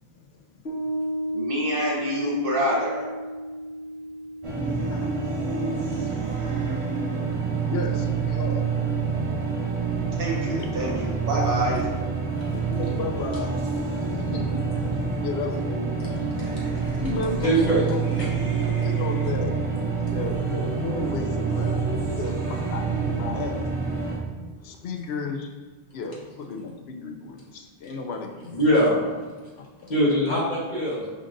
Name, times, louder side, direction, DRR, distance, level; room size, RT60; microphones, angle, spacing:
Piano, 0.7-7.4, equal, 70° left, 1.3 m, -34 dB
voice 1, 1.3-3.1 10.2-11.9, equal, 60° right, -3 dB, 1.1 m, -27 dB
sound 1, 4.4-24.2, right 5 dB, 35° right, 0.7 m, -27 dB
voice 2, 7.7-8.6 12.4-14.6 15.2-15.9 17.0-19.5 20.1-21.8 22.2-23.7 24.6-25.5 25.9-28.6 28.9-29.0 30.1-30.4, left 4 dB, 85° left, 3 dB, 0.8 m, -34 dB
voice 3, 16.6-17.0 17.4-17.8 18.2-18.3 28.5-29.0 29.9-31.0, equal, 45° left, -6 dB, 1.4 m, -22 dB
5.2 x 3.7 x 2.5 m, 1.4 s
omnidirectional pair, 1.0 m